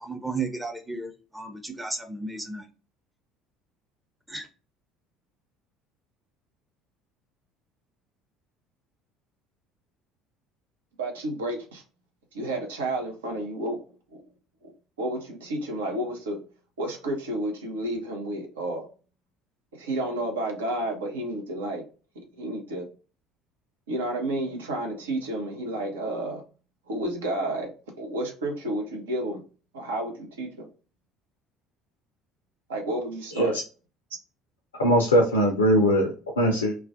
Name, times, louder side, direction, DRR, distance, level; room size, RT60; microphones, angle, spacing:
voice 1, 0.0-2.6 4.3-4.5, right 3 dB, 10° right, 5 dB, 0.6 m, -34 dB
voice 2, 11.0-11.8 12.3-13.8 14.1-14.2 15.0-16.4 16.8-18.8 19.7-21.8 22.4-22.9 23.9-26.4 26.9-27.7 28.0-29.4 29.7-30.7 32.7-33.6, right 1 dB, 70° right, 2 dB, 0.6 m, -31 dB
voice 3, 34.8-36.7, equal, 75° left, 1 dB, 0.4 m, -21 dB
2.3 x 2.1 x 2.5 m, 0.36 s
figure-of-eight pair, 60°, 0 cm